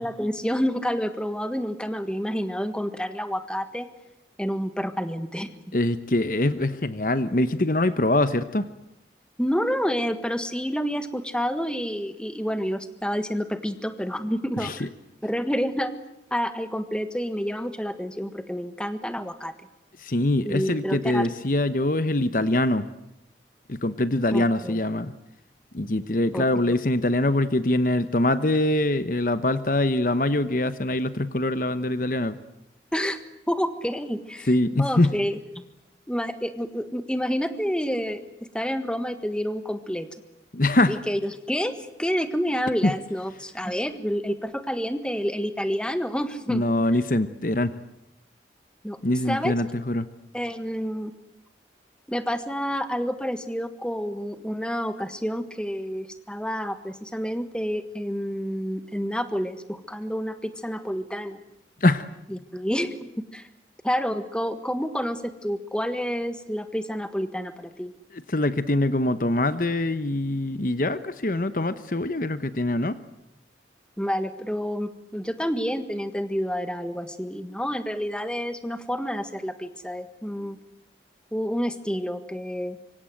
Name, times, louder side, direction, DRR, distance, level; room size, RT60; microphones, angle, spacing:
voice 1, 0.0-3.9 4.4-5.5 9.4-14.9 15.2-15.9 16.3-19.5 20.4-21.3 24.3-24.8 26.3-26.7 32.9-33.2 33.5-35.4 36.1-38.2 38.5-40.1 40.9-46.6 48.8-49.0 49.2-49.5 50.3-51.1 52.1-61.4 62.3-63.5 63.8-67.9 74.0-80.6 81.3-82.8, equal, 5° left, 9 dB, 1.5 m, -29 dB
voice 2, 5.7-8.7 14.6-14.8 20.0-22.9 23.7-25.1 25.7-32.4 34.5-35.1 40.5-41.0 42.8-42.9 46.5-47.7 49.0-50.1 61.8-62.1 68.1-73.0, left 1 dB, 50° left, 12 dB, 1.0 m, -23 dB
25.5 x 25.0 x 7.9 m, 0.85 s
head